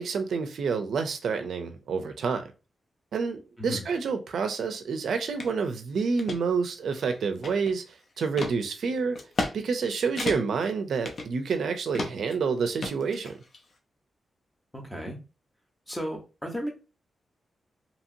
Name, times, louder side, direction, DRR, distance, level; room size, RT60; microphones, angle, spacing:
voice 1, 0.0-2.5 3.1-9.2 9.5-13.4, right 5 dB, 75° right, 0.4 m, -28 dB
sound 1, 5.4-5.5 6.0-6.4 6.9-7.9 8.4-8.6 9.2-9.5 9.8-9.9 10.2-10.6 11.0-11.6 11.9-12.3 12.8-13.6, left 2 dB, 45° left, 0.6 m, -33 dB
voice 2, 14.7-15.2 15.9-16.7, equal, 5° left, 0.8 m, -34 dB
2.8 x 2.7 x 2.6 m
wide cardioid pair, 155°, 0 cm